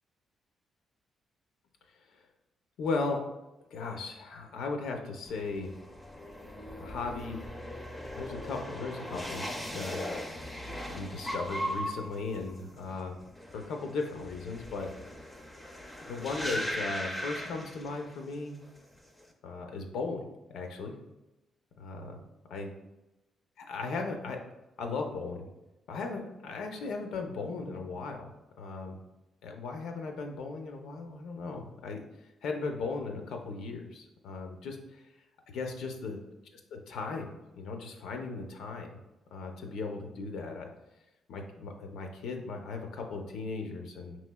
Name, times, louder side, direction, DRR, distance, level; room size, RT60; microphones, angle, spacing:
voice 1, 2.8-3.2 3.7-5.7 6.8-7.4 8.2-9.4 9.7-10.1 10.9-13.2 13.5-14.9 16.1-18.6 19.4-20.9 21.8-22.2 22.5-22.7 23.6-24.4 24.8-25.5 25.9-28.3 28.6-29.0 29.4-32.0 32.4-35.0 35.5-36.2 36.7-39.0 39.3-40.7 41.3-44.2, left 4 dB, 75° left, 3 dB, 0.5 m, -37 dB
sound 1, 5.3-18.3 18.6-19.2, equal, 5° left, 0.4 m, -39 dB
5.5 x 3.1 x 2.2 m, 0.98 s
cardioid pair, 170°, 0 cm